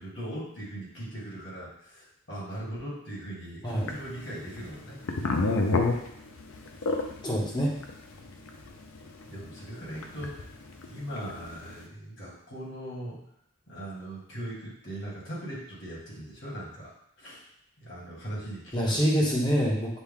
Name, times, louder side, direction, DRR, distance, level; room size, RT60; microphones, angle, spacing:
voice 1, 0.0-5.0 5.4-5.7 6.8-6.9 9.2-10.5 10.8-13.3 13.7-16.9 17.2-17.4 17.8-19.0, right 1 dB, 60° left, -6 dB, 1.8 m, -40 dB
sound 1, 3.8-11.7, left 3 dB, 75° left, 0.5 m, -29 dB
voice 2, 7.2-7.7 18.7-20.0, equal, 20° left, -3 dB, 0.9 m, -26 dB
6.1 x 2.2 x 3.6 m, 0.73 s
head